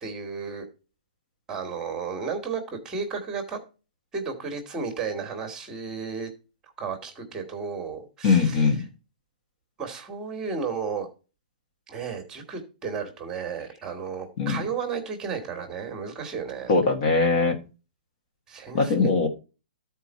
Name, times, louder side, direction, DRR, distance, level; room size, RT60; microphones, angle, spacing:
voice 1, 0.0-0.7 1.5-3.6 4.1-6.3 6.8-8.7 9.8-11.1 11.9-16.7 18.5-19.2, right 5 dB, 15° right, 4 dB, 1.6 m, -33 dB
voice 2, 8.2-8.8 14.4-14.6 16.7-17.6 18.7-19.3, left 4 dB, 45° left, 4 dB, 1.5 m, -21 dB
12.5 x 4.4 x 4.2 m, 0.33 s
hypercardioid pair, 155°, 5 cm